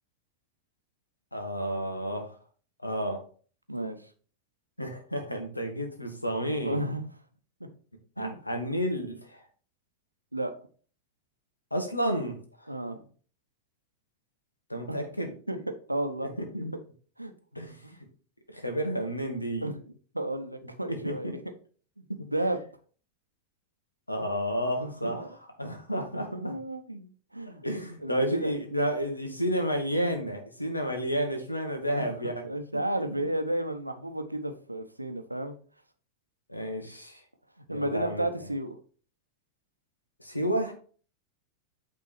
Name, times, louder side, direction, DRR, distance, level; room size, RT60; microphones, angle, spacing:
voice 1, 1.3-2.4 2.8-3.2 4.8-6.8 8.2-9.4 11.7-12.7 14.7-15.3 16.2-16.7 17.5-17.8 18.5-19.7 20.9-21.3 24.1-25.2 25.6-26.5 27.6-32.4 32.7-32.8 33.1-33.3 36.5-37.2 37.7-38.3 40.2-40.7, equal, 85° left, 5 dB, 1.3 m, -31 dB
voice 2, 6.6-7.0 7.6-7.7 8.2-8.4 10.3-10.6 12.7-13.0 14.9-15.0 15.5-15.6 15.9-16.3 17.2-17.3 19.6-19.8 20.1-21.4 22.0-22.6 24.8-25.3 26.3-27.6 28.0-28.5 31.9-32.1 32.4-35.6 37.7-38.8, right 1 dB, 85° right, 7 dB, 0.8 m, -32 dB
8.5 x 3.6 x 4.5 m, 0.42 s
figure-of-eight pair, 90°, 0 cm